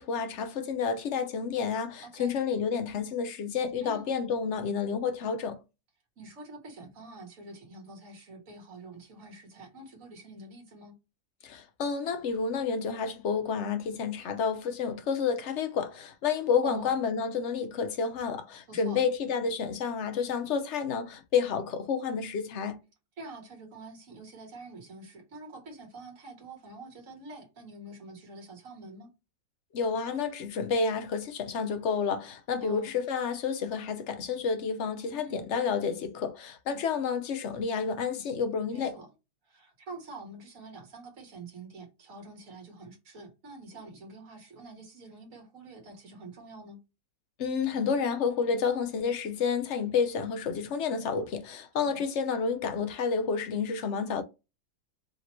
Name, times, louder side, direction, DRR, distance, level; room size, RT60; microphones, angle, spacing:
voice 1, 0.0-5.6 11.4-22.8 29.7-39.0 47.4-54.2, left 6 dB, 60° left, 0.8 m, -30 dB
voice 2, 2.0-2.4 3.8-4.1 6.2-11.0 16.6-17.0 18.7-19.0 23.2-29.1 32.6-32.9 35.1-35.4 38.7-39.1 39.4-46.8 51.8-52.0, right 2 dB, 55° right, 1.7 m, -46 dB
5.0 x 2.9 x 3.0 m
omnidirectional pair, 1.7 m